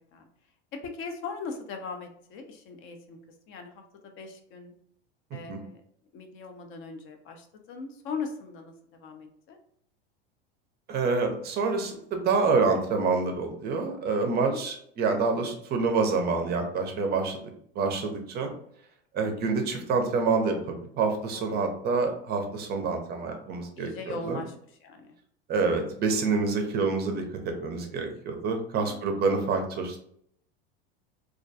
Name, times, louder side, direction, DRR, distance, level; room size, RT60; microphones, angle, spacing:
voice 1, 0.7-3.2 3.5-3.8 4.2-4.7 5.3-5.8 6.1-9.6 14.2-14.6 21.3-21.5 23.8-24.5 24.8-25.1 28.8-29.0, left 4 dB, 45° left, 5 dB, 0.4 m, -39 dB
voice 2, 10.9-17.5 17.8-18.5 19.1-24.4 25.5-30.0, right 4 dB, 35° right, 4 dB, 0.5 m, -27 dB
2.3 x 2.2 x 2.6 m, 0.67 s
supercardioid pair, 110°, 30 cm